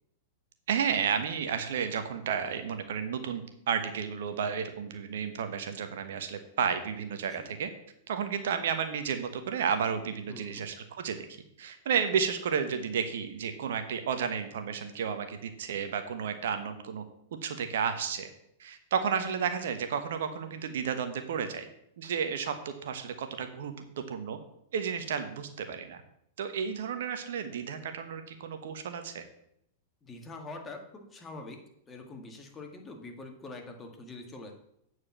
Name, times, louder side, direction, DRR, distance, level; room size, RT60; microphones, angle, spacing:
voice 1, 0.7-7.7 8.1-11.3 11.6-17.0 17.4-18.3 18.6-21.7 22.0-24.4 24.7-26.0 26.4-29.2, right 7 dB, 70° right, 8 dB, 1.2 m, -32 dB
voice 2, 10.3-10.7 30.0-31.6 31.9-34.5, left 2 dB, 20° left, 3 dB, 1.9 m, -44 dB
8.8 x 4.7 x 7.3 m, 0.74 s
hypercardioid pair, 105°, 0 cm